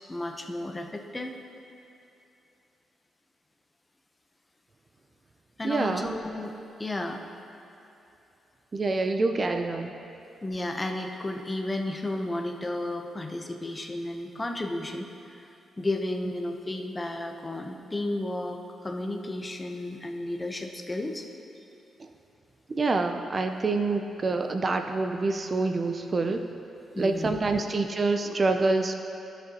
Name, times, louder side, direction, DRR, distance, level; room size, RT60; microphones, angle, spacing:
voice 1, 0.1-1.3 5.6-7.2 10.4-15.5 15.8-21.3 26.9-27.3, left 1 dB, 20° left, 4 dB, 0.7 m, -33 dB
voice 2, 5.6-6.1 8.7-9.9 22.7-26.4 26.9-29.0, right 3 dB, 35° right, 6 dB, 0.4 m, -26 dB
14.5 x 6.5 x 2.8 m, 2.9 s
cardioid pair, 90°, 0 cm